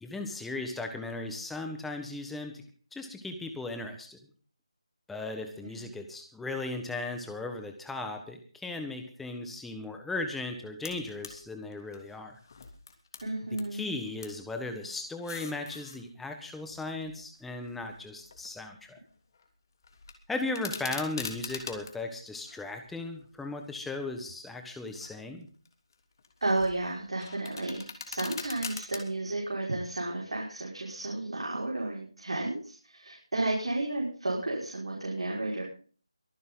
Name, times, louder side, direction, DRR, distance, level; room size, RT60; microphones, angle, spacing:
voice 1, 0.0-2.6 2.9-4.2 5.1-12.4 13.7-19.0 20.3-25.5, left 2 dB, 5° left, 5 dB, 1.5 m, -37 dB
sound 1, 10.8-11.4 11.7-13.7 14.0-14.4 15.0-16.0 16.7-18.8 19.1-19.5 19.8-21.9 22.5-23.4 23.9-24.2 24.8-25.3 25.7-29.0, left 5 dB, 40° left, 3.1 m, -44 dB
voice 2, 13.2-13.8 26.4-35.6, right 2 dB, 75° right, -3 dB, 5.6 m, -32 dB
23.5 x 9.4 x 4.0 m, 0.42 s
figure-of-eight pair, 165°, 3 cm